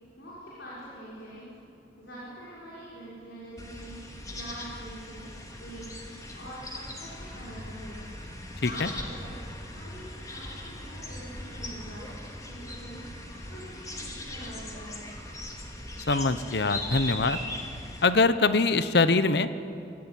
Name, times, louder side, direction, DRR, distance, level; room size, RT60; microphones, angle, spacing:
voice 1, 0.2-1.5 2.0-5.3 5.6-5.9 6.3-8.0 8.6-9.4 9.7-12.1 12.4-13.2 13.4-15.1, equal, 90° left, -7 dB, 6.0 m, -44 dB
sound 1, 3.6-18.1, left 1 dB, 20° left, 2.7 m, -39 dB
voice 2, 16.1-17.4 18.0-19.7, left 3 dB, 70° left, 12 dB, 1.0 m, -23 dB
26.0 x 15.5 x 9.2 m, 2.7 s
head